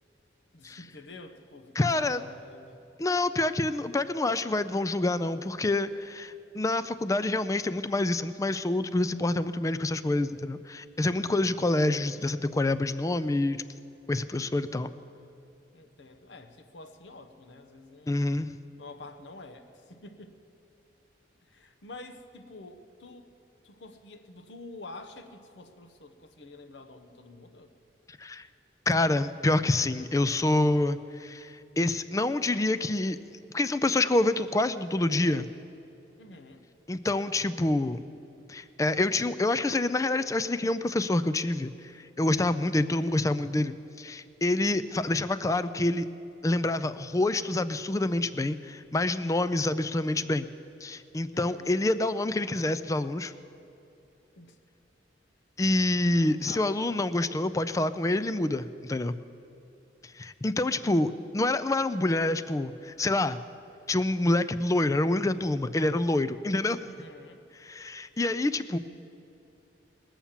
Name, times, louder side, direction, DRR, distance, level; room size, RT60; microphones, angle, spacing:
voice 1, 0.5-2.8 11.2-11.5 15.7-18.2 18.8-20.4 21.5-23.3 23.6-27.7 36.2-36.7 51.3-51.7 54.4-54.6 56.1-56.8 66.9-67.4, left 2 dB, 75° left, 7 dB, 0.9 m, -48 dB
voice 2, 1.8-2.2 3.0-13.6 14.1-14.9 18.1-18.6 28.2-28.5 28.9-33.2 33.5-35.5 36.9-38.0 38.5-46.1 46.4-50.5 50.8-53.3 55.6-59.2 60.0-63.4 63.9-66.8 67.6-68.8, left 2 dB, 20° left, 13 dB, 0.4 m, -27 dB
19.5 x 7.2 x 7.3 m, 2.9 s
head